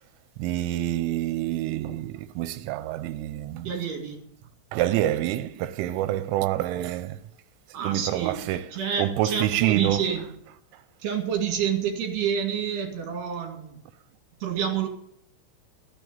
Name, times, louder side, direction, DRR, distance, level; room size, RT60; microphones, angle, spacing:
voice 1, 0.4-3.7 4.7-7.2 7.8-8.6 9.0-10.1, right 13 dB, 85° right, 3.2 m, -27 dB
voice 2, 3.7-4.2 7.7-10.3 11.0-13.8 14.4-14.9, right 8 dB, 60° right, 4.0 m, -28 dB
14.5 x 6.9 x 9.1 m
omnidirectional pair, 5.6 m